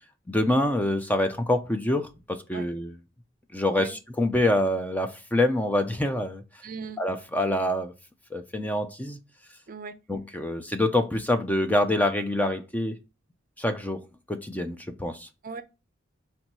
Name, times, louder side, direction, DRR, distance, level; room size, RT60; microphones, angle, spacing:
voice 1, 0.3-2.9 3.5-6.4 7.0-7.9 8.3-9.2 10.1-13.0 13.6-14.0 14.3-15.3, left 1 dB, 10° left, 0.5 m, -26 dB
voice 2, 6.6-7.0 9.7-10.0 15.4-15.6, right 5 dB, 45° right, 0.5 m, -37 dB
4.4 x 3.0 x 3.9 m
head